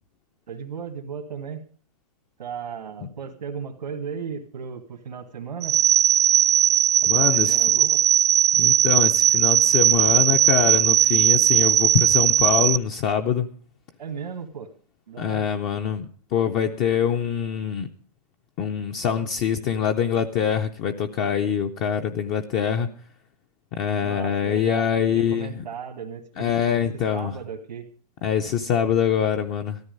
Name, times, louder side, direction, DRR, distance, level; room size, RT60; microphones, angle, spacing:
voice 1, 0.5-1.6 2.4-5.8 7.1-8.0 14.0-14.7 15.1-15.5 24.0-26.8 27.1-27.9, right 6 dB, 90° right, -1 dB, 2.0 m, -35 dB
sound 1, 5.6-12.8, right 10 dB, 70° right, 0.6 m, -18 dB
voice 2, 7.1-7.6 8.5-13.5 15.2-17.9 18.6-23.1 23.7-25.6 26.4-27.3 28.2-29.8, left 8 dB, 25° left, 6 dB, 0.6 m, -24 dB
13.5 x 13.0 x 5.3 m, 0.43 s
hypercardioid pair, 155°, 21 cm